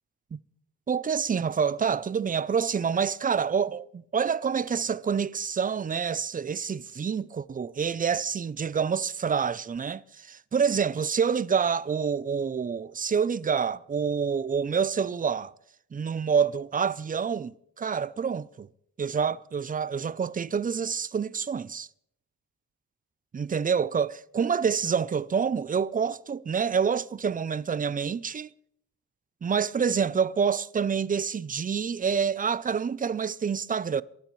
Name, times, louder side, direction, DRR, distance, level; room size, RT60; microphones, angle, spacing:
voice 1, 0.9-15.5 15.9-18.7 19.0-21.9 23.3-28.5 29.4-34.0, right 6 dB, 25° right, 0.4 m, -27 dB
27.0 x 12.5 x 3.1 m
cardioid pair, 85°, 34 cm